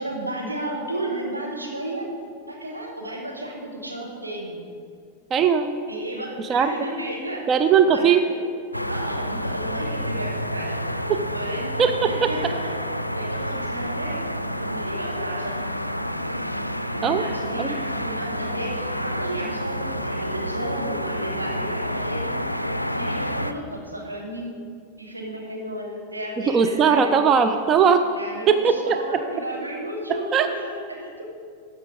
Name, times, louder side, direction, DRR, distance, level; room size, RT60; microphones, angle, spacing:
voice 1, 0.0-2.1 2.5-4.6 5.9-8.2 8.9-10.8 11.3-11.7 12.0-12.7 13.1-15.6 16.8-22.3 22.7-24.5 25.0-27.3 28.1-31.3, right 1 dB, 85° right, 0 dB, 1.6 m, -33 dB
voice 2, 5.3-5.9 6.5-6.7 7.5-8.2 11.1-11.2 11.8-12.5 17.0-17.2 17.6-17.8 26.5-28.0 28.5-29.2 30.3-30.5, right 7 dB, 30° right, 8 dB, 0.5 m, -19 dB
sound 1, 8.7-23.5, equal, 90° left, 0.4 m, -29 dB
13.0 x 6.6 x 4.8 m, 2.2 s
figure-of-eight pair, 90°, 0 cm